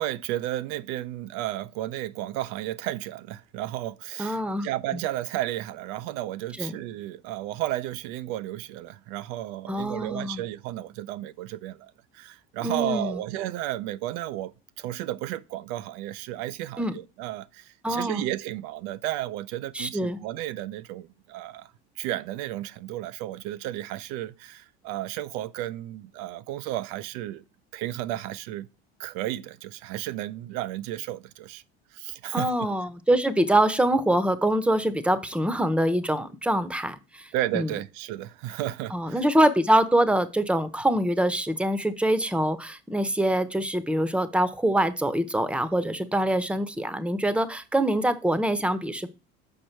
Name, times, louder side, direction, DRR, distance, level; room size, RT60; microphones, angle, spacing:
voice 1, 0.0-21.7 22.0-27.4 27.7-28.7 29.0-31.6 31.9-32.5 37.3-39.2, right 14 dB, 80° right, 0.6 m, -33 dB
voice 2, 4.2-5.0 6.6-6.7 9.7-10.4 12.6-13.2 16.8-16.9 17.8-18.3 19.7-20.2 32.3-37.7 38.9-49.1, right 1 dB, 5° right, 0.8 m, -24 dB
6.7 x 5.2 x 4.4 m
supercardioid pair, 95°, 30 cm